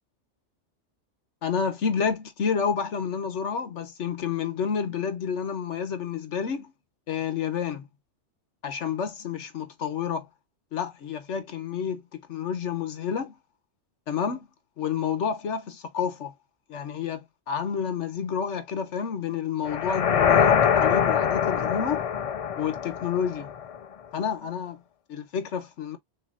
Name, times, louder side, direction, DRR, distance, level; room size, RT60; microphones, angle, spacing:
voice 1, 1.4-6.7 7.1-7.9 8.6-10.3 10.7-13.3 14.1-14.5 14.8-16.3 16.7-22.0 22.6-23.5 24.1-24.8 25.1-26.0, left 7 dB, 75° left, 1.2 m, -29 dB
sound 1, 19.7-23.8, left 8 dB, 50° left, 0.4 m, -23 dB
6.8 x 2.9 x 2.4 m
omnidirectional pair, 1.2 m